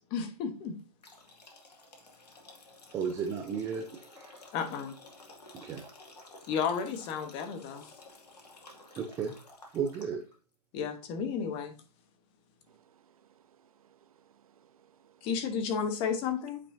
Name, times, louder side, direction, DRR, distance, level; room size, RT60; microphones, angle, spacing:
voice 1, 0.1-0.8 4.5-5.0 6.5-7.9 10.7-11.7 15.2-16.6, left 6 dB, 25° left, 1.1 m, -32 dB
sound 1, 1.0-10.3, left 2 dB, 90° left, 2.2 m, -53 dB
voice 2, 2.9-4.4 5.5-5.9 9.0-9.4 9.7-10.3, right 6 dB, 15° right, 0.6 m, -34 dB
voice 3, 12.7-14.1 14.6-15.2, right 9 dB, 60° right, 0.7 m, -64 dB
8.6 x 5.1 x 2.7 m
hypercardioid pair, 140°, 20 cm